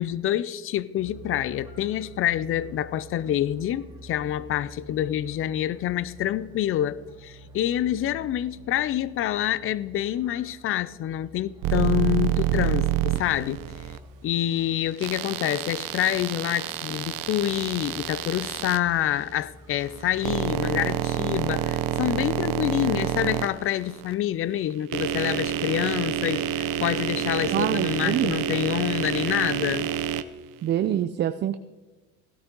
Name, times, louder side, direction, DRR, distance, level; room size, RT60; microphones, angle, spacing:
voice 1, 0.0-13.6 14.2-29.9, left 12 dB, 35° left, 0.4 m, -27 dB
sound 1, 1.0-20.2, right 1 dB, 10° right, 2.2 m, -48 dB
sound 2, 11.6-14.0 15.0-18.8 19.8-24.1 24.7-30.2, right 11 dB, 55° right, 0.7 m, -28 dB
voice 2, 27.5-28.3 30.6-31.6, right 11 dB, 30° right, 0.4 m, -25 dB
16.0 x 12.0 x 3.8 m
supercardioid pair, 110°, 40 cm